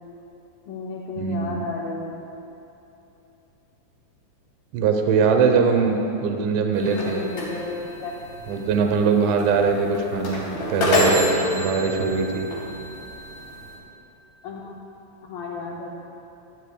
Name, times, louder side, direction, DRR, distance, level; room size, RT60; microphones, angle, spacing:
voice 1, 0.7-2.3 6.8-8.1 10.3-10.9 14.4-14.7 15.2-15.9, left 3 dB, 85° left, -3 dB, 2.1 m, -34 dB
voice 2, 1.2-1.6 4.7-7.2 8.5-10.4 10.7-12.5, right 5 dB, 80° right, 4 dB, 3.2 m, -21 dB
sound 1, 6.7-13.8, left 1 dB, 50° left, 4.6 m, -27 dB
25.0 x 11.5 x 2.3 m, 3.0 s
omnidirectional pair, 5.5 m